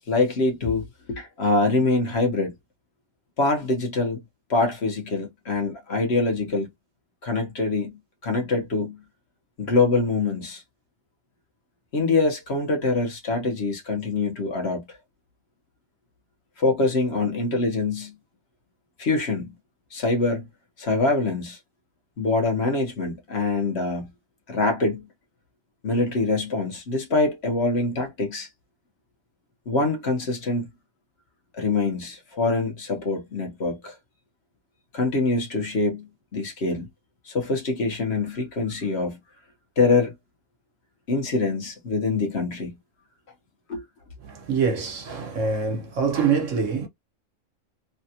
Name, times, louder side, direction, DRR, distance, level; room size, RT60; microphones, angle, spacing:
voice 1, 0.0-2.5 3.4-4.2 4.5-6.7 7.2-7.9 8.2-9.0 9.6-10.6 11.9-14.8 16.6-18.1 19.0-19.5 19.9-20.4 20.8-21.6 22.2-24.1 24.5-25.0 25.8-28.5 29.7-30.7 31.6-33.9 34.9-36.9 37.3-39.2 39.8-40.1 41.1-42.8 43.7-43.8, left 3 dB, 55° left, 1.2 m, -24 dB
voice 2, 44.2-46.9, right 5 dB, 70° right, 1.3 m, -25 dB
3.4 x 2.3 x 2.7 m
omnidirectional pair, 1.4 m